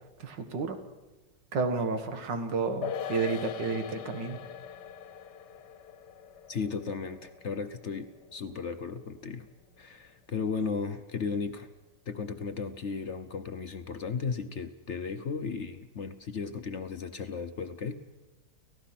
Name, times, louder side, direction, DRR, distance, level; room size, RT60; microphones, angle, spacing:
voice 1, 0.2-0.8 1.5-4.4, right 4 dB, 85° right, 7 dB, 2.3 m, -31 dB
sound 1, 2.8-9.5 9.8-9.9, left 8 dB, 70° left, 1.5 m, -42 dB
voice 2, 6.5-9.5 9.8-11.7 12.1-18.0, left 5 dB, 55° left, 9 dB, 0.9 m, -35 dB
30.0 x 16.0 x 5.9 m, 1.1 s
omnidirectional pair, 1.9 m